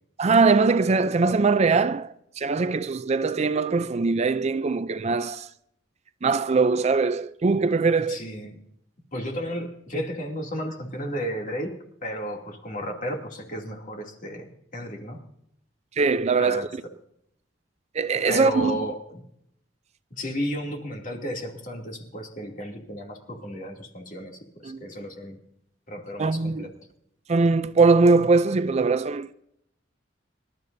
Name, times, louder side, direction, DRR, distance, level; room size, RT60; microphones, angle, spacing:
voice 1, 0.2-5.5 6.2-8.2 16.0-16.7 17.9-18.8 24.6-24.8 26.2-26.7 27.3-29.3, right 4 dB, 35° right, 0.4 m, -21 dB
voice 2, 8.1-8.6 9.1-11.7 12.0-15.2 16.4-16.7 18.3-19.2 20.1-25.4 25.9-26.7, equal, 45° left, 2.7 m, -33 dB
25.5 x 12.5 x 2.7 m
head